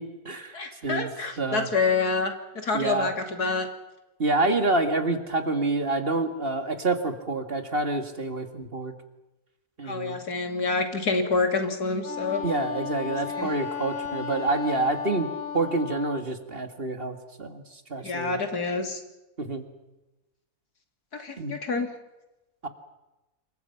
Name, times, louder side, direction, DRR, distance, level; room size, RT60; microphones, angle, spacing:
voice 1, 0.0-1.1 1.4-1.7 2.7-3.1 4.2-8.9 9.8-10.2 12.3-15.3 15.5-18.4 19.4-19.7 21.4-21.6 22.6-22.7, right 2 dB, 40° right, 7 dB, 2.2 m, -28 dB
voice 2, 0.5-3.7 9.8-12.4 13.4-13.5 18.0-19.0 21.1-21.9, left 4 dB, 80° left, 5 dB, 3.4 m, -27 dB
Wind instrument woodwind instrument, 12.0-16.3, left 7 dB, 40° left, 1.2 m, -34 dB
27.5 x 23.5 x 5.9 m, 1.0 s
omnidirectional pair, 1.6 m